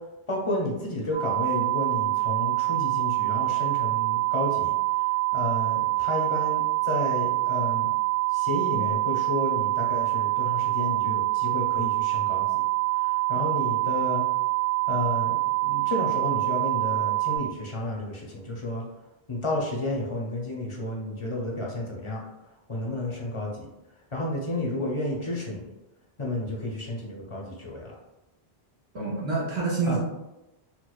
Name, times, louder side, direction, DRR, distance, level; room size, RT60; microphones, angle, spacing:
voice 1, 0.3-4.7 5.3-8.0 8.3-12.4 13.0-14.2 14.9-18.8 19.3-22.2 22.7-23.7 24.1-25.7 26.2-27.9 29.8-30.0, left 1 dB, 40° left, -2 dB, 0.5 m, -31 dB
sound 1, 1.1-17.4, right 20 dB, 50° right, 0.9 m, -25 dB
voice 2, 28.9-30.0, right 4 dB, 85° right, -6 dB, 1.2 m, -27 dB
4.5 x 2.1 x 2.3 m, 0.96 s
omnidirectional pair, 1.1 m